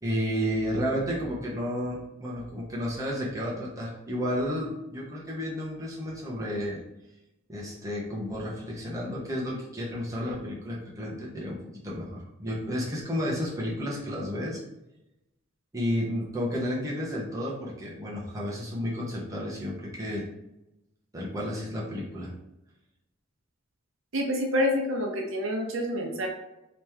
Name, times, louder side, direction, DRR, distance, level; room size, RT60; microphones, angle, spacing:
voice 1, 0.0-6.8 7.5-14.6 15.7-20.2 21.1-22.3, equal, 15° right, -5 dB, 0.8 m, -32 dB
voice 2, 24.1-26.3, left 1 dB, 70° right, 1 dB, 0.7 m, -27 dB
3.0 x 3.0 x 3.5 m, 0.91 s
head